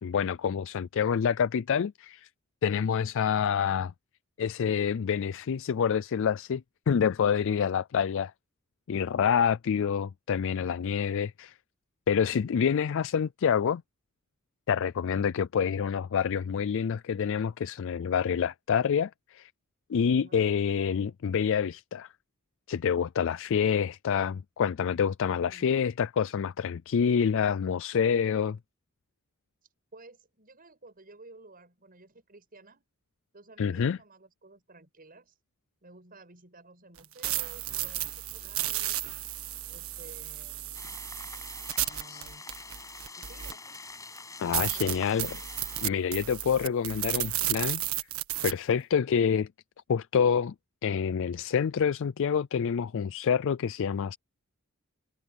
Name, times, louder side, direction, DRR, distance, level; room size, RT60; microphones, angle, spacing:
voice 1, 0.0-2.3 2.6-3.9 4.4-8.3 8.9-11.5 12.1-13.8 14.7-19.5 19.9-22.1 22.7-28.6 33.6-34.0 42.1-42.2 44.4-45.3 45.8-47.8 48.4-49.5 49.9-50.5 50.8-54.2, left 7 dB, 65° left, 0.4 m, -27 dB
voice 2, 25.4-25.8 29.9-32.8 33.3-35.3 35.8-39.1 39.7-41.1 41.7-42.4 43.2-43.8 44.6-45.4, right 2 dB, 45° right, 6.9 m, -53 dB
sound 1, 37.0-43.8 44.2-44.3 44.5-48.5, right 13 dB, 75° right, 1.7 m, -33 dB
sound 2, 40.7-45.8, left 3 dB, 15° left, 6.3 m, -45 dB
head